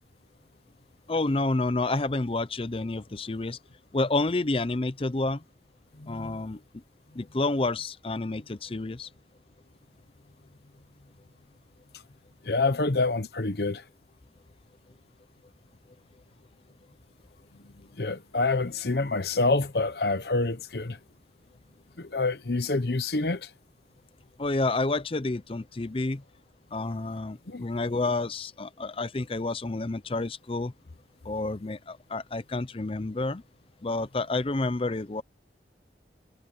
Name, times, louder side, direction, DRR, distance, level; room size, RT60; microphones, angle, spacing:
voice 1, 1.1-3.6 3.9-5.4 6.1-6.6 7.2-9.1 24.4-26.2 26.7-30.7 31.2-33.4 33.8-35.2, left 2 dB, 30° left, 0.6 m, -29 dB
voice 2, 6.0-6.4 12.4-13.8 17.6-21.0 22.0-23.5 27.5-27.7, left 3 dB, 60° left, 1.0 m, -27 dB
head